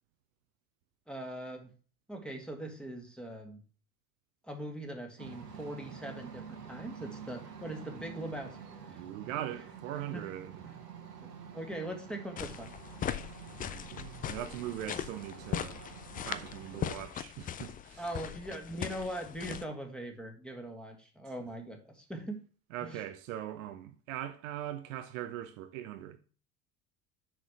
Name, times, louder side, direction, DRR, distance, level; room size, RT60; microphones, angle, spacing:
voice 1, 1.1-1.7 2.1-3.6 4.4-8.8 10.1-10.3 10.6-10.7 11.2-12.7 18.0-22.4 22.8-23.0, right 1 dB, ahead, 2.0 m, -41 dB
sound 1, 5.2-16.9, right 6 dB, 80° right, 1.6 m, -48 dB
voice 2, 8.9-10.6 13.6-18.0 22.7-26.2, right 12 dB, 55° right, 1.0 m, -41 dB
sound 2, 12.4-19.7, left 9 dB, 20° left, 0.5 m, -39 dB
6.6 x 6.1 x 5.7 m
figure-of-eight pair, 70°, 47 cm